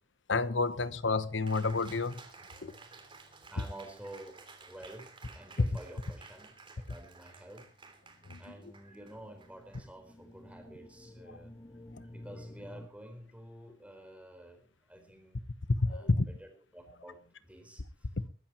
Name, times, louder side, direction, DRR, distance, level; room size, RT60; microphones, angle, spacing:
voice 1, 0.3-2.3 2.6-2.7 5.6-5.7 8.2-8.5 11.3-11.4 11.9-12.0 15.7-16.3 18.2-18.3, left 3 dB, 85° left, 1.0 m, -30 dB
Cheering, 1.5-10.4, right 4 dB, 30° right, 3.2 m, -54 dB
voice 2, 3.5-5.1 5.3-7.6 8.4-11.5 12.0-15.4 15.9-16.1 16.4-18.1, right 1 dB, 5° right, 4.3 m, -50 dB
sound 1, 7.9-12.9, left 1 dB, 20° left, 1.0 m, -52 dB
22.5 x 13.0 x 3.0 m
head